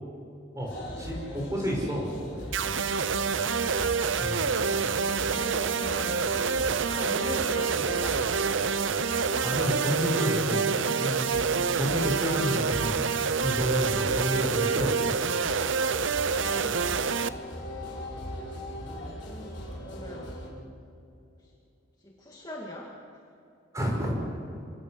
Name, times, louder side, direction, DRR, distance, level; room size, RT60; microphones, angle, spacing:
sound 1, 0.6-20.5, equal, 60° left, 5.4 m, -40 dB
voice 1, 0.6-2.1 2.4-2.5 3.6-4.5 9.4-11.3 11.7-13.0 13.4-15.2 23.7-24.2, equal, 15° right, -1 dB, 5.5 m, -30 dB
sound 2, 2.5-17.3, right 5 dB, 70° right, 0.7 m, -27 dB
voice 2, 5.3-6.2 6.6-8.2 19.8-20.4 22.0-22.9, left 1 dB, 20° left, -2 dB, 2.2 m, -41 dB
27.0 x 18.5 x 6.5 m, 2.7 s
head